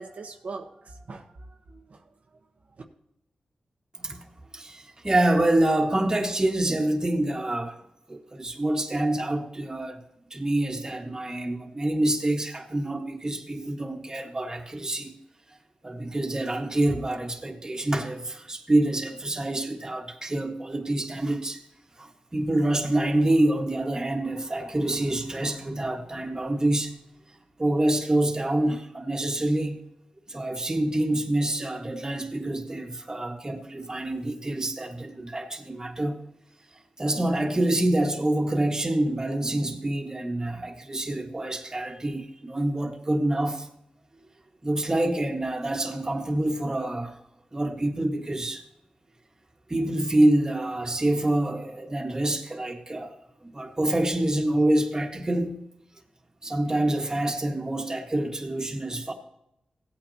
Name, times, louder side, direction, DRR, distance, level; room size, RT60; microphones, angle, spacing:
voice 1, 0.0-2.0, right 4 dB, 65° right, 1.2 m, -41 dB
voice 2, 4.0-7.8 8.1-10.0 10.3-15.1 15.8-21.6 22.0-26.9 27.6-29.8 30.3-36.2 37.0-43.7 44.6-47.2 47.5-48.6 49.7-55.5 56.4-59.1, right 1 dB, 25° right, 1.7 m, -26 dB
16.5 x 8.9 x 2.9 m
cardioid pair, 65°, 3 cm